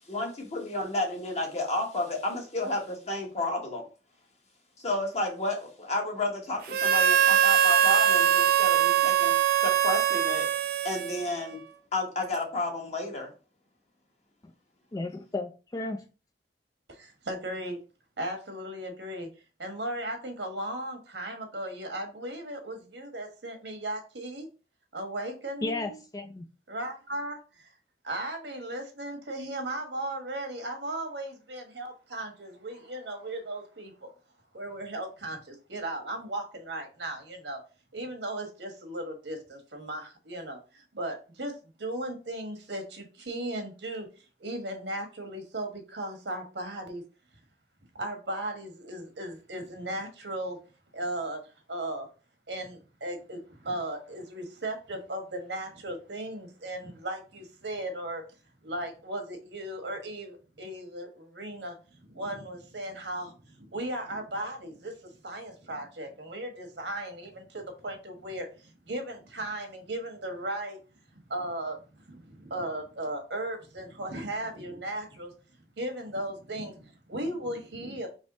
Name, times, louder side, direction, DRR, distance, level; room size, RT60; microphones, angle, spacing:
voice 1, 0.1-3.8 4.8-9.3 9.6-10.5 10.8-11.6 11.9-13.3, left 2 dB, 40° left, 1 dB, 1.2 m, -31 dB
Harmonica, 6.7-11.5, right 9 dB, 55° right, 0.4 m, -23 dB
voice 2, 14.9-16.0 25.6-26.4, left 2 dB, 20° left, 5 dB, 0.3 m, -34 dB
voice 3, 16.9-17.8 18.2-19.3 19.6-24.5 24.9-26.0 26.7-27.7 28.0-34.1 34.5-37.6 37.9-41.5 41.8-44.1 44.4-47.0 47.9-50.6 50.9-51.4 51.7-52.1 52.5-58.2 58.6-70.8 71.3-75.3 75.8-78.1, right 1 dB, 85° right, 4 dB, 1.2 m, -36 dB
3.6 x 3.1 x 3.8 m, 0.34 s
head